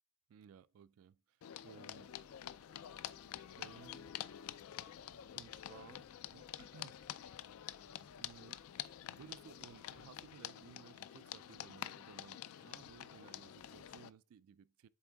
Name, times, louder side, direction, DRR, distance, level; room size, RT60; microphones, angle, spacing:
voice 1, 0.3-1.4 1.6-2.2 3.6-4.5 5.3-7.0 8.0-8.6 9.0-14.9, right 7 dB, 80° right, 0.3 m, -59 dB
sound 1, 1.4-14.1, left 11 dB, 80° left, 0.3 m, -48 dB
sound 2, 1.9-10.3, equal, 5° left, 0.3 m, -69 dB
8.2 x 3.5 x 3.4 m
head